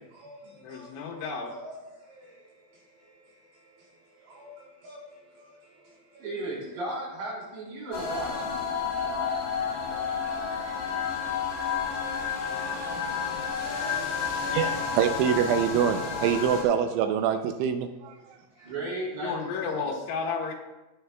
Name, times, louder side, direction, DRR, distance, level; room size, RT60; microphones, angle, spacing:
voice 1, 0.4-1.5 19.2-20.5, left 5 dB, 80° left, 0 dB, 3.9 m, -32 dB
voice 2, 1.2-1.8 2.1-2.2 4.4-4.5 4.8-5.0 5.5-5.6 6.1-8.5 10.3-10.9 12.6-12.8 13.6-14.0 14.4-15.0 18.6-19.4 19.7-19.8, right 1 dB, 65° right, -6 dB, 5.9 m, -37 dB
sound 1, 7.9-16.6, left 6 dB, 65° left, 4.8 m, -31 dB
voice 3, 14.5-18.4, right 8 dB, 85° right, 7 dB, 3.1 m, -25 dB
16.5 x 11.0 x 2.3 m, 1.0 s
omnidirectional pair, 5.5 m